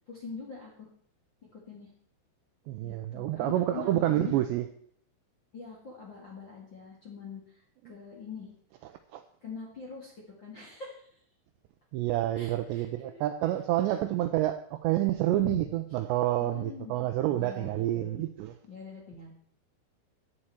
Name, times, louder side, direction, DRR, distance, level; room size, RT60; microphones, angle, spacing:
voice 1, 0.1-0.9 1.5-1.9 2.8-4.4 5.5-7.4 7.8-8.5 9.4-10.1 10.4-11.1 12.3-13.2 13.9-14.3 15.4-15.6 16.4-18.2 18.7-19.3, left 5 dB, 40° left, -3 dB, 1.6 m, -43 dB
voice 2, 2.7-4.7 8.8-9.2 11.9-18.6, right 14 dB, 85° right, 8 dB, 2.5 m, -28 dB
14.5 x 10.0 x 4.4 m, 0.63 s
omnidirectional pair, 5.6 m